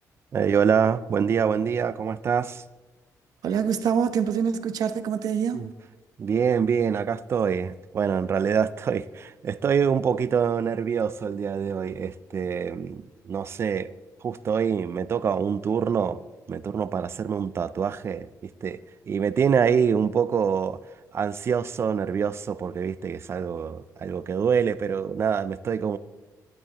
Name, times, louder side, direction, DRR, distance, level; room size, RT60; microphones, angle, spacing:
voice 1, 0.3-2.6 5.5-5.7 6.2-13.9 14.2-16.2 16.5-18.8 19.1-20.8 21.1-26.0, right 7 dB, 40° right, 16 dB, 0.4 m, -25 dB
voice 2, 3.4-5.7, right 7 dB, 70° right, 9 dB, 0.7 m, -25 dB
12.5 x 11.0 x 2.9 m, 1.2 s
cardioid pair, 135°, 7 cm